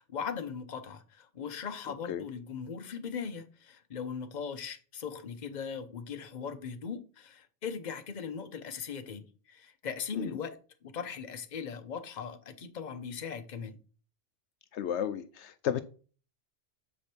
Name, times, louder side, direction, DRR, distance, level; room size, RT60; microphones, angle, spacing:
voice 1, 0.0-13.8, left 6 dB, 40° left, 0.9 m, -39 dB
voice 2, 14.7-15.8, left 9 dB, 75° left, 0.8 m, -33 dB
7.5 x 5.1 x 4.4 m
omnidirectional pair, 1.2 m